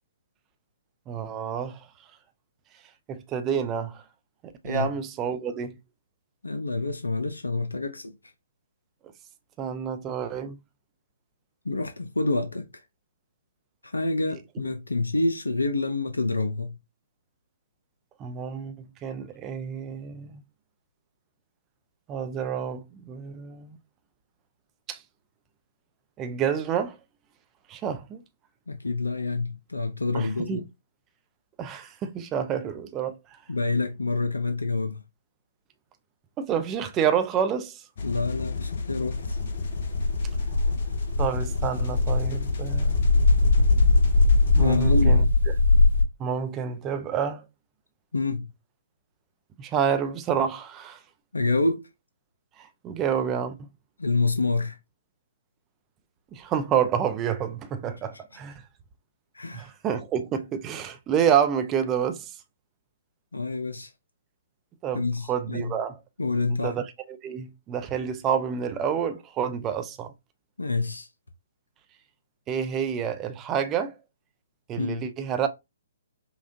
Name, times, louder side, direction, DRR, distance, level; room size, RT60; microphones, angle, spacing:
voice 1, 1.1-1.9 3.1-4.0 4.4-5.8 9.6-10.6 18.2-20.4 22.1-23.8 24.9-25.0 26.2-27.0 27.7-28.2 30.1-30.6 31.6-33.4 36.4-37.8 41.2-43.0 44.5-45.3 46.2-47.5 49.6-51.0 52.6-53.7 56.3-58.6 59.5-62.4 64.8-66.0 66.5-70.1 72.5-73.9 74.7-75.5, right 8 dB, 20° right, 0.6 m, -28 dB
voice 2, 6.4-8.1 11.6-12.8 13.8-16.8 28.7-30.6 33.5-35.0 38.0-39.4 44.6-45.3 48.1-48.5 51.3-51.9 54.0-54.8 59.3-59.7 63.3-63.9 64.9-65.7 66.2-66.7 70.6-71.1 74.8-75.0, left 3 dB, 85° left, 0.6 m, -27 dB
sound 1, 38.0-45.0, left 4 dB, 55° left, 0.8 m, -32 dB
sound 2, 39.1-46.0, left 3 dB, 65° right, 1.0 m, -21 dB
5.5 x 2.4 x 2.5 m
figure-of-eight pair, 130°, 0 cm